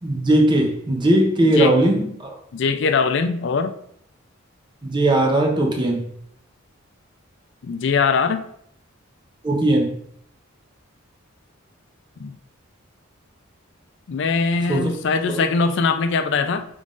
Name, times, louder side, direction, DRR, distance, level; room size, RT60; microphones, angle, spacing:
voice 1, 0.0-2.3 4.8-6.1 9.4-9.9 14.7-15.0 15.3-15.5, right 1 dB, 20° right, 0.5 m, -19 dB
voice 2, 1.4-1.7 2.5-3.7 7.6-8.5 12.2-12.4 14.1-16.7, left 4 dB, 55° left, 0.3 m, -21 dB
5.0 x 3.7 x 2.4 m
head